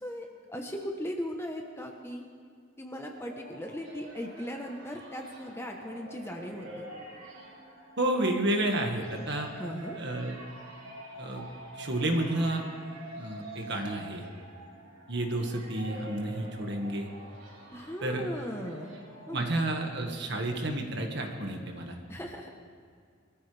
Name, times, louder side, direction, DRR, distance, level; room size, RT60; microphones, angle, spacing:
voice 1, 0.0-2.2 2.8-6.9 9.6-10.0 17.7-18.9 19.3-19.5 22.1-22.7, equal, 10° left, 2 dB, 1.1 m, -38 dB
sound 1, 3.2-20.0, right 1 dB, 75° right, 5.1 m, -47 dB
voice 2, 8.0-9.5 10.0-10.4 11.2-11.4 11.7-12.6 13.2-14.2 15.1-17.1 18.0-18.3 19.3-22.0, right 1 dB, 55° right, 2 dB, 1.9 m, -30 dB
23.5 x 14.0 x 3.5 m, 2.3 s
head